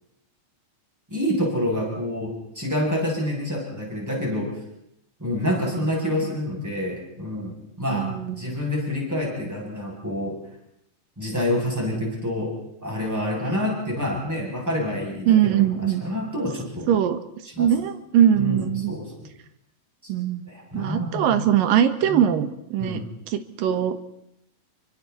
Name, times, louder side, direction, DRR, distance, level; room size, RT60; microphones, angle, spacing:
voice 1, 1.1-4.5 5.2-10.4 11.2-12.6 12.8-17.0 17.5-17.7 18.4-19.1 20.5-21.4 22.0-22.2 22.8-23.1, left 1 dB, 5° right, -3 dB, 7.7 m, -27 dB
voice 2, 7.9-8.4 15.3-16.0 16.9-17.2 17.6-18.9 20.1-20.4 20.7-23.0 23.3-24.0, right 10 dB, 75° right, 10 dB, 2.9 m, -21 dB
28.5 x 24.5 x 4.3 m, 0.77 s
omnidirectional pair, 4.1 m